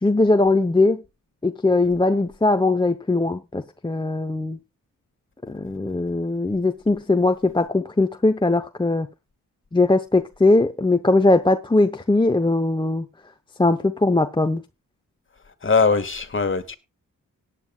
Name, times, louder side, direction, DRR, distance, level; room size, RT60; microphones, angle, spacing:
voice 1, 0.0-1.0 1.4-4.6 5.5-9.1 9.7-13.1 13.6-14.6, left 2 dB, 15° left, 0.8 m, -20 dB
voice 2, 15.6-16.8, left 4 dB, 35° left, 1.7 m, -21 dB
18.5 x 9.4 x 2.3 m
cardioid pair, 70°, 33 cm